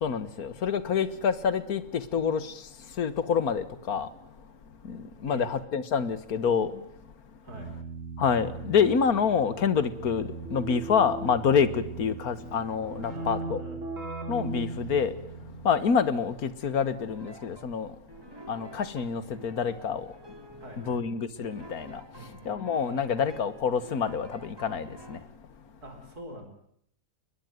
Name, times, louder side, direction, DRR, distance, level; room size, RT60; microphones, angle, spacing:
voice 1, 0.0-2.5 3.0-4.1 4.8-6.7 8.2-13.6 14.3-15.1 15.6-17.9 18.5-20.1 20.8-22.0 22.5-25.2, left 6 dB, 75° left, 1.9 m, -27 dB
voice 2, 7.4-7.8 13.0-13.8 20.6-21.0 22.1-22.4 25.8-26.5, right 1 dB, 80° right, 5.4 m, -44 dB
Keyboard (musical), 7.5-15.9, right 3 dB, 55° right, 4.8 m, -38 dB
sound 1, 17.1-17.7 18.1-25.2, right 1 dB, 15° right, 3.2 m, -49 dB
22.0 x 21.0 x 9.4 m
omnidirectional pair, 1.6 m